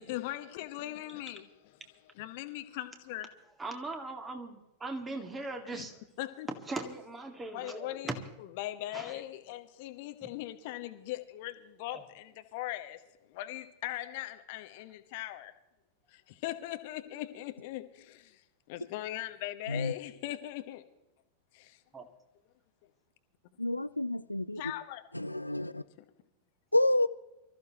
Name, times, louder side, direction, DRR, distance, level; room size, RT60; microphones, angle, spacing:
voice 1, 0.0-1.5 2.2-3.3 5.4-5.5 5.7-5.8 6.2-6.5 7.5-8.1 8.4-13.0 13.3-15.5 16.1-18.4 18.7-20.8 21.5-21.8 24.6-25.0, left 15 dB, 50° left, 1.2 m, -40 dB
voice 2, 3.6-6.0 6.5-8.2 8.9-9.2 10.2-10.3 11.9-12.0 21.9-22.1, right 2 dB, 15° right, 2.1 m, -39 dB
voice 3, 23.6-24.6 25.1-25.8 26.7-27.1, left 1 dB, 85° left, 0.4 m, -29 dB
25.0 x 14.5 x 3.0 m
figure-of-eight pair, 90°, 0 cm